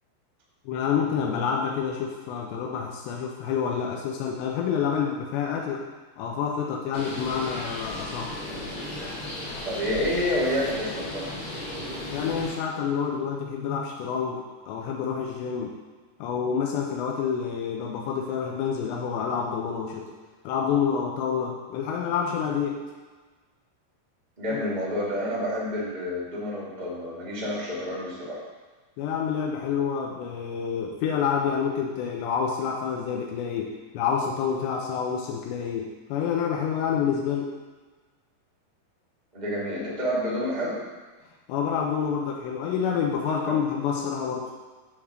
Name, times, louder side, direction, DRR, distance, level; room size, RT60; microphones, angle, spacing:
voice 1, 0.7-5.9 6.2-8.4 12.1-15.8 16.2-20.1 20.4-22.8 24.5-24.6 29.0-37.5 41.5-44.5, left 7 dB, 85° left, 0 dB, 3.0 m, -28 dB
Bird, 6.9-12.5, left 1 dB, 60° left, 4.6 m, -35 dB
voice 2, 9.6-11.3 24.4-28.4 39.3-40.8 43.4-43.5, equal, 40° right, -6 dB, 0.5 m, -29 dB
10.5 x 3.6 x 6.5 m, 1.3 s
omnidirectional pair, 5.1 m